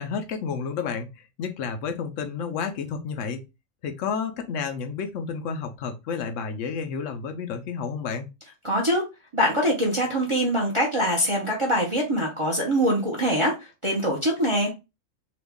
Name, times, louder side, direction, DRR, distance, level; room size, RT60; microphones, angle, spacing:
voice 1, 0.0-3.4 3.8-8.3, left 6 dB, 75° left, 6 dB, 0.9 m, -31 dB
voice 2, 8.6-9.0 9.3-14.7, equal, 30° right, -1 dB, 0.7 m, -23 dB
3.0 x 2.3 x 3.5 m, 0.26 s
omnidirectional pair, 1.4 m